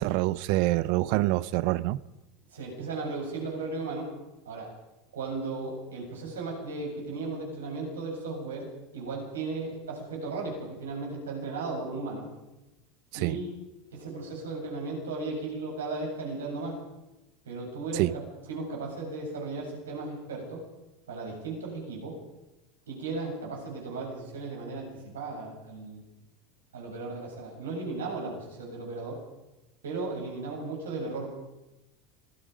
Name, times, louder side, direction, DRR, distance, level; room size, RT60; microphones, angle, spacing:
voice 1, 0.0-2.0 13.1-13.4 17.9-18.1, right 18 dB, 65° right, 0.8 m, -26 dB
voice 2, 2.5-4.1 4.4-4.7 5.1-12.3 13.2-13.5 13.9-16.8 17.5-20.6 21.1-22.2 22.9-26.0 26.7-29.2 29.8-31.3, right 3 dB, 90° right, 7.8 m, -36 dB
26.0 x 19.5 x 5.2 m
hypercardioid pair, 90°, 0 cm